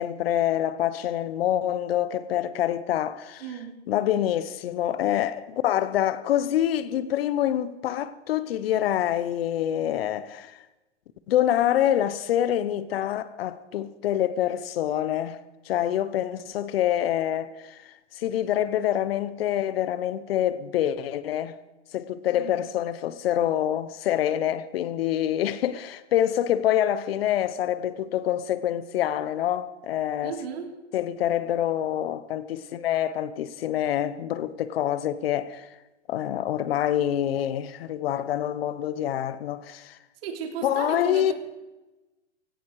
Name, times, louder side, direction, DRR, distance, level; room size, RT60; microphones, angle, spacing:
voice 1, 0.0-3.4 3.9-10.6 11.3-15.4 15.6-21.6 21.9-30.3 30.9-35.7 36.1-40.0 40.6-41.3, left 11 dB, 55° left, 1.1 m, -26 dB
voice 2, 3.4-3.8 22.4-22.6 30.2-30.8 40.2-41.3, right 7 dB, 55° right, 3.5 m, -35 dB
17.5 x 16.5 x 4.8 m
hypercardioid pair, 150°, 35 cm